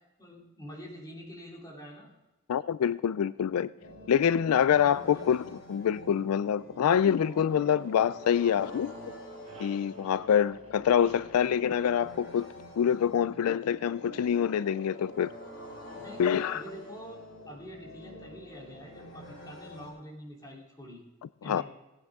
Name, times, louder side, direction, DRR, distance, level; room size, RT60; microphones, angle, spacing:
voice 1, 0.2-2.1 4.5-5.2 15.9-17.2 17.5-21.0 21.4-21.6, equal, 20° left, 3.1 m, -46 dB
voice 2, 2.5-3.7 4.1-8.9 9.6-12.5 12.8-15.3 16.2-16.6 21.5-21.6, left 8 dB, 90° left, 0.3 m, -26 dB
sound 1, 3.2-8.3, right 2 dB, 60° right, 2.3 m, -58 dB
sound 2, 3.8-19.9, equal, 55° left, 4.8 m, -47 dB
sound 3, 7.7-8.8 9.1-12.8, right 2 dB, 30° right, 2.4 m, -55 dB
17.5 x 9.2 x 3.6 m
head